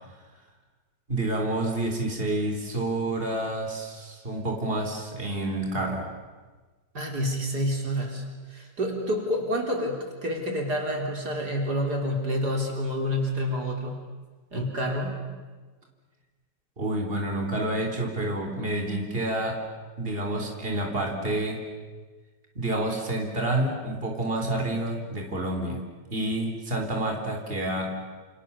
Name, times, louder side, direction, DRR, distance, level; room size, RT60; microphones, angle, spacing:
voice 1, 1.1-6.1 16.8-19.6 20.0-21.6 22.6-25.8 26.1-28.0, right 1 dB, 30° right, 2 dB, 4.2 m, -28 dB
voice 2, 6.9-8.2 8.5-14.0 14.5-15.1, equal, 65° right, 1 dB, 4.3 m, -28 dB
29.0 x 29.0 x 7.1 m, 1.3 s
omnidirectional pair, 1.9 m